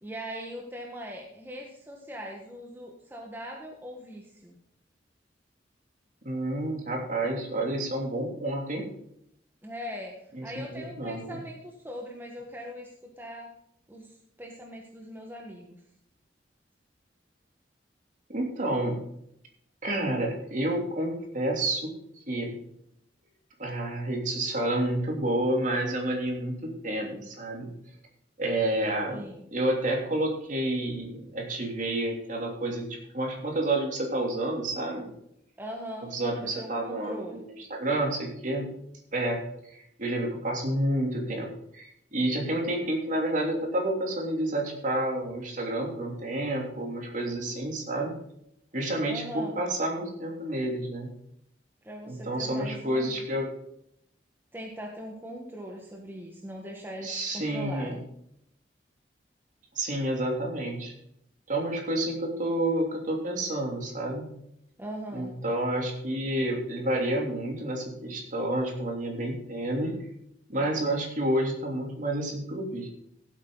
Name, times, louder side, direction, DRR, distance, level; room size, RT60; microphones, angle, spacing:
voice 1, 0.0-4.6 9.6-13.5 13.9-15.8 29.1-29.4 35.6-36.1 36.4-37.5 49.1-49.6 51.8-53.2 54.5-58.0 64.8-65.4, equal, 10° right, 0 dB, 1.5 m, -40 dB
voice 2, 6.2-8.8 10.3-10.4 10.7-11.4 18.3-19.0 19.8-21.9 22.3-22.6 23.6-27.7 28.4-29.2 29.5-35.1 36.1-38.7 39.1-48.2 48.7-51.1 52.1-53.5 57.0-58.0 59.7-60.9 61.5-64.3 65.1-69.9 70.5-72.9, right 1 dB, 45° right, 1 dB, 3.1 m, -29 dB
16.0 x 8.1 x 4.0 m, 0.74 s
head